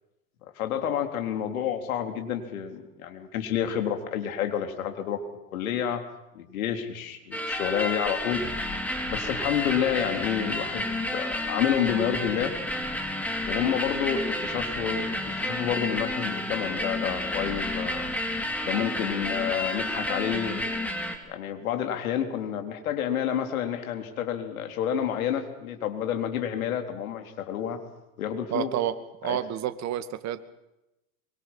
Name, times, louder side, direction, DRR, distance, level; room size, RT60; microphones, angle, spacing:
voice 1, 0.4-5.2 5.5-6.0 6.3-8.4 9.1-12.5 13.4-18.1 18.6-20.6 21.2-27.8 28.2-28.7 29.2-29.4, left 9 dB, 75° left, 6 dB, 3.9 m, -29 dB
sound 1, 7.3-21.2, left 1 dB, 5° left, 4.1 m, -31 dB
voice 2, 28.5-28.9 29.2-30.4, right 11 dB, 40° right, 9 dB, 2.3 m, -29 dB
24.0 x 24.0 x 5.8 m, 0.91 s
hypercardioid pair, 100°, 43 cm